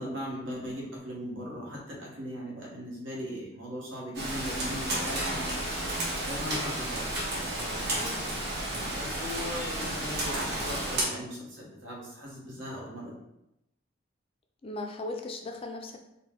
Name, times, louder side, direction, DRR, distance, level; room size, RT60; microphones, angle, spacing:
voice 1, 0.0-5.6 5.9-7.3 8.9-13.1, equal, 75° right, -4 dB, 1.2 m, -38 dB
Rain, 4.1-11.0, right 1 dB, 60° right, 1.0 m, -32 dB
voice 2, 8.0-8.4 14.6-16.0, left 2 dB, 30° left, 4 dB, 0.3 m, -38 dB
4.1 x 2.1 x 3.6 m, 0.85 s
head